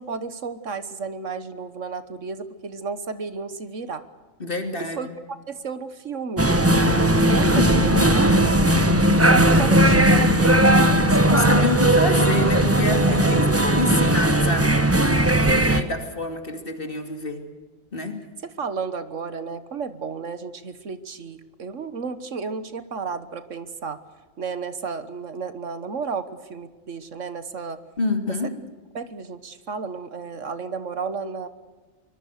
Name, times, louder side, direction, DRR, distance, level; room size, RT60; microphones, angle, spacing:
voice 1, 0.0-4.0 5.0-5.1 5.5-8.6 9.2-11.7 13.1-13.3 18.4-24.0 24.4-27.8 29.0-31.5, right 5 dB, 75° right, 12 dB, 1.7 m, -32 dB
voice 2, 4.4-5.1 7.5-8.2 11.3-14.7 15.4-17.5 17.9-18.2 28.0-28.5, left 2 dB, 45° left, 5 dB, 2.9 m, -27 dB
sound 1, 6.4-15.8, right 1 dB, 10° right, 1.2 m, -18 dB
25.0 x 22.0 x 6.7 m, 1.3 s
omnidirectional pair, 1.3 m